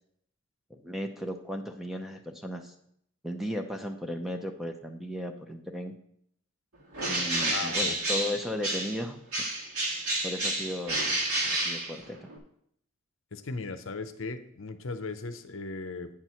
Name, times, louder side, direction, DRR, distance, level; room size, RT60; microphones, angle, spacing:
voice 1, 0.7-2.7 3.2-5.9 7.1-9.2 10.2-11.0 11.5-12.3, equal, ahead, 4 dB, 0.6 m, -35 dB
Bird, 6.9-9.0 9.3-12.4, right 1 dB, 90° right, 1.7 m, -30 dB
voice 2, 7.4-8.0 13.3-16.1, left 3 dB, 65° left, 9 dB, 0.7 m, -37 dB
8.9 x 4.6 x 5.7 m, 0.70 s
head